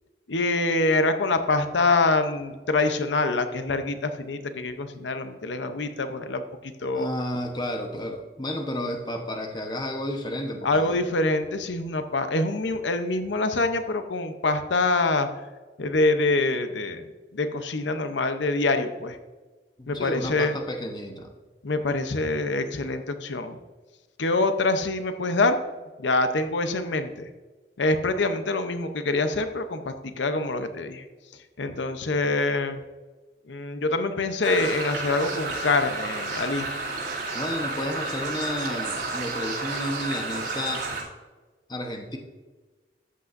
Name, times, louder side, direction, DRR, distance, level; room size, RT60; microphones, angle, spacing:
voice 1, 0.3-6.4 6.8-7.1 10.6-15.3 15.8-17.0 17.3-19.2 19.9-20.5 21.6-23.6 24.2-25.6 26.0-27.3 27.8-31.0 31.6-32.8 33.5-36.7, left 2 dB, 90° left, 8 dB, 0.7 m, -25 dB
voice 2, 6.9-11.0 19.8-21.3 37.3-40.9 41.7-42.2, left 1 dB, 25° left, 3 dB, 1.0 m, -32 dB
sound 1, 34.4-41.0, right 3 dB, 85° right, 3.0 m, -31 dB
13.5 x 8.3 x 2.6 m, 1.3 s
head